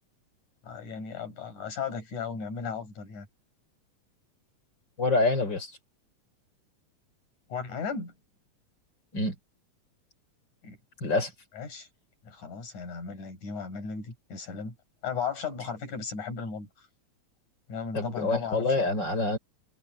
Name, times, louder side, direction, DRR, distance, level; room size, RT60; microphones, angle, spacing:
voice 1, 0.6-3.3 7.5-8.1 10.6-10.8 11.5-11.9 12.2-14.8 15.0-16.9 17.7-18.9, left 6 dB, 80° left, 6.7 m, -36 dB
voice 2, 5.0-5.8 9.1-9.4 11.0-11.3 17.9-19.4, left 3 dB, 35° left, 5.6 m, -26 dB
omnidirectional pair, 3.4 m